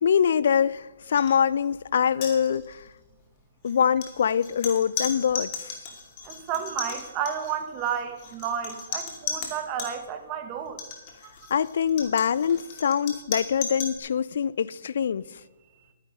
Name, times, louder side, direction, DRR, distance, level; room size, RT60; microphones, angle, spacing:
voice 1, 0.0-2.8 3.6-5.8 11.5-15.2, left 7 dB, 65° left, 0.4 m, -24 dB
sound 1, 1.2-1.3 1.6-1.8 2.1-2.9 3.7-9.9 10.7-14.0, left 5 dB, 35° left, 2.4 m, -36 dB
voice 2, 6.3-10.8, right 8 dB, 30° right, 1.5 m, -31 dB
11.5 x 9.9 x 5.3 m
hypercardioid pair, 140°, 0 cm